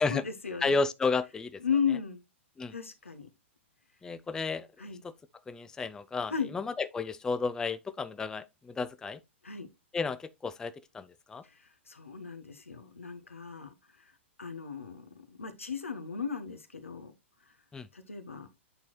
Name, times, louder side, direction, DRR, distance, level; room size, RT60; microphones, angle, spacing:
voice 1, 0.1-0.7 1.6-2.2 2.7-3.3 4.8-5.0 6.3-6.5 9.4-9.7 11.4-13.7 14.4-17.1 17.9-18.5, left 6 dB, 85° left, 1.1 m, -35 dB
voice 2, 0.6-1.6 2.6-2.7 4.0-4.7 5.0-5.1 5.5-9.2 9.9-11.4 17.7-17.9, left 4 dB, 10° left, 0.4 m, -32 dB
8.5 x 4.4 x 3.1 m
figure-of-eight pair, 110°, 7 cm